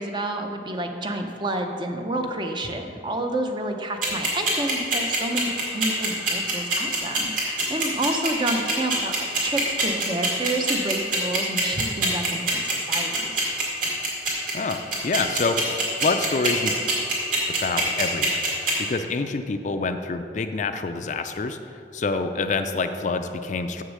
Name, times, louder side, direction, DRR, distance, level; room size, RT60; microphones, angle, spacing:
voice 1, 0.0-13.6, right 1 dB, 25° right, 4 dB, 0.6 m, -29 dB
sound 1, 4.0-18.7, right 3 dB, 50° right, 2.3 m, -23 dB
voice 2, 14.5-16.8 17.6-18.4 18.8-21.6 21.9-23.8, left 3 dB, 45° left, 8 dB, 0.4 m, -27 dB
7.2 x 6.5 x 6.2 m, 2.5 s
head